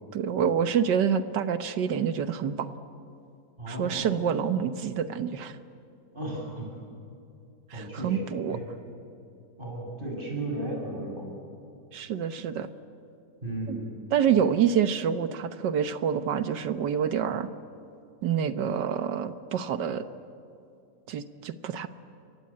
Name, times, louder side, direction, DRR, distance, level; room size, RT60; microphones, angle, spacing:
voice 1, 0.1-2.7 3.7-5.6 7.7-8.6 11.9-12.7 13.7-13.8 14.1-17.5 18.2-20.0 21.1-21.9, right 8 dB, 85° right, 11 dB, 1.7 m, -27 dB
voice 2, 3.6-4.1 6.1-6.7 7.7-8.6 9.6-11.3 13.4-13.8, right 1 dB, 30° right, 0 dB, 7.2 m, -35 dB
29.5 x 23.0 x 8.7 m, 2.5 s
omnidirectional pair, 1.8 m